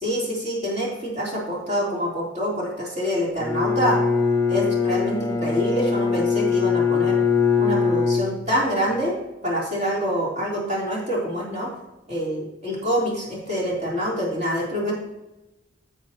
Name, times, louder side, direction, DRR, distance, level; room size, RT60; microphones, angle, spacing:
voice 1, 0.0-4.0 4.5-7.2 7.6-11.7 12.1-14.9, equal, 40° right, -4 dB, 3.5 m, -26 dB
Bowed string instrument, 3.4-8.8, left 5 dB, 15° left, 1.1 m, -22 dB
10.0 x 8.2 x 3.0 m, 0.96 s
head